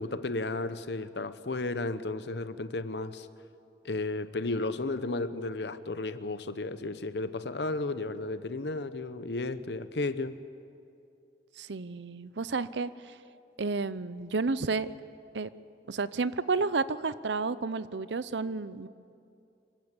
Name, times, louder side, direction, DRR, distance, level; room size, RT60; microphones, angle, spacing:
voice 1, 0.0-3.3 3.8-10.4, left 2 dB, 75° left, 13 dB, 0.9 m, -33 dB
voice 2, 11.6-13.1 13.6-14.9 15.3-15.5 15.9-18.9, right 4 dB, 85° right, 16 dB, 0.7 m, -31 dB
26.0 x 15.0 x 8.3 m, 2.5 s
head